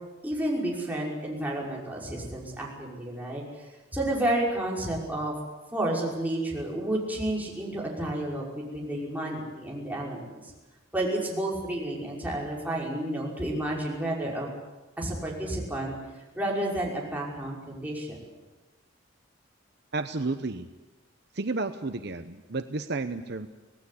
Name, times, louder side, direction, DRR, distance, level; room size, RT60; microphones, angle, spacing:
voice 1, 0.2-5.3 5.7-10.5 10.9-14.5 15.0-16.0 16.3-18.2, right 1 dB, 10° right, -4 dB, 5.8 m, -31 dB
voice 2, 19.9-20.7 21.3-23.5, right 3 dB, 55° right, 9 dB, 0.9 m, -32 dB
26.0 x 18.0 x 8.5 m, 1.2 s
head